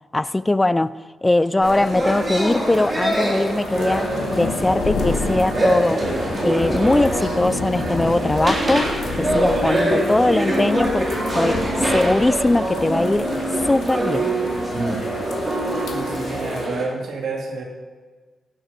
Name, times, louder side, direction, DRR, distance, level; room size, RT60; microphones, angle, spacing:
voice 1, 0.1-6.0 6.4-13.3 13.6-14.3, left 2 dB, 10° left, 0.4 m, -21 dB
sound 1, 1.6-16.7, left 4 dB, 80° left, 2.3 m, -31 dB
sound 2, 1.6-16.8, right 1 dB, 25° right, 3.8 m, -24 dB
voice 2, 15.9-17.6, right 3 dB, 75° right, 3.3 m, -29 dB
18.0 x 9.4 x 5.9 m
wide cardioid pair, 155°, 0 cm